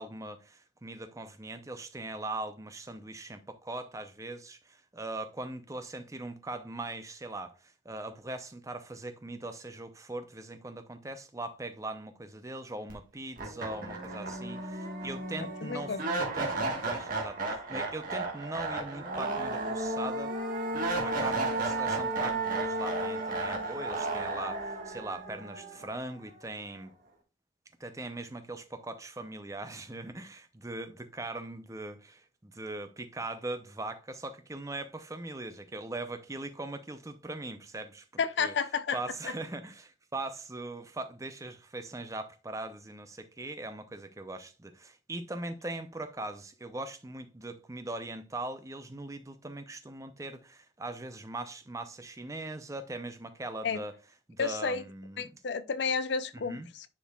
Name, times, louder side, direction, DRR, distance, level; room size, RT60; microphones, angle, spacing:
voice 1, 0.0-20.3 21.0-26.9 27.8-38.5 38.9-54.0 54.3-55.4 56.3-56.7, right 2 dB, 15° right, 0.6 m, -40 dB
sound 1, 12.9-13.0 13.4-26.4, right 2 dB, 45° right, 1.4 m, -33 dB
voice 2, 15.6-16.0 38.2-39.0 53.6-53.8 54.4-54.8 55.2-56.9, left 5 dB, 60° left, 0.5 m, -31 dB
10.0 x 4.6 x 2.3 m
head